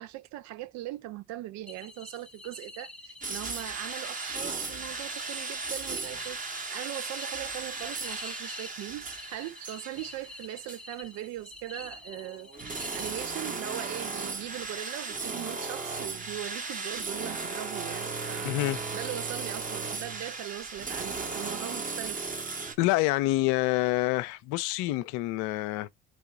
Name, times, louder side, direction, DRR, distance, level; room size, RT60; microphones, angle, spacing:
voice 1, 0.0-12.5 12.9-18.6 18.9-22.2, right 15 dB, 55° right, 0.5 m, -40 dB
sound 1, 1.7-13.6, left 2 dB, 5° left, 0.7 m, -48 dB
sound 2, 3.2-10.4 10.7-10.8 11.8-22.7, right 4 dB, 25° right, 0.9 m, -36 dB
voice 2, 18.4-18.8 22.8-25.9, left 18 dB, 65° left, 0.5 m, -27 dB
3.4 x 2.9 x 3.6 m
hypercardioid pair, 60°, 33 cm